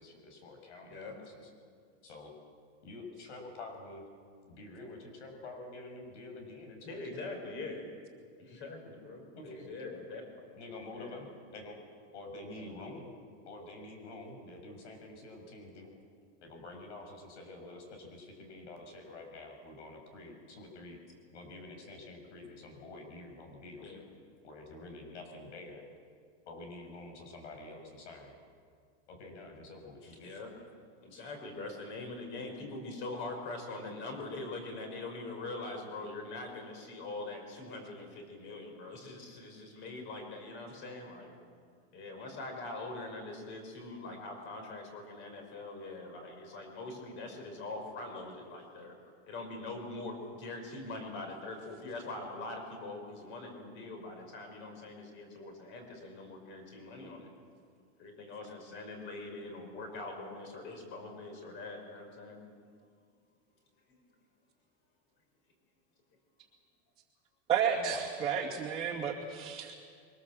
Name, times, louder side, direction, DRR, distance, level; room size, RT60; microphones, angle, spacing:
voice 1, 0.0-1.3 2.0-2.3 2.8-4.1 4.5-7.4 9.3-9.7 10.5-11.8 12.1-13.1 13.5-15.9 16.4-21.0 21.3-23.9 24.4-25.8 26.5-28.3 29.1-30.3 31.1-31.2 67.7-68.3, left 2 dB, 80° left, 3 dB, 6.5 m, -48 dB
voice 2, 6.8-7.8 8.4-10.5 11.0-11.2 12.5-12.9 23.8-24.0 30.0-30.5 31.0-41.4 41.9-49.0 49.3-57.3 58.0-62.4 63.9-64.0, left 2 dB, 35° left, 4 dB, 5.5 m, -43 dB
voice 3, 67.5-69.8, right 7 dB, 15° right, -5 dB, 2.4 m, -32 dB
26.5 x 24.0 x 7.6 m, 2.1 s
supercardioid pair, 170°, 34 cm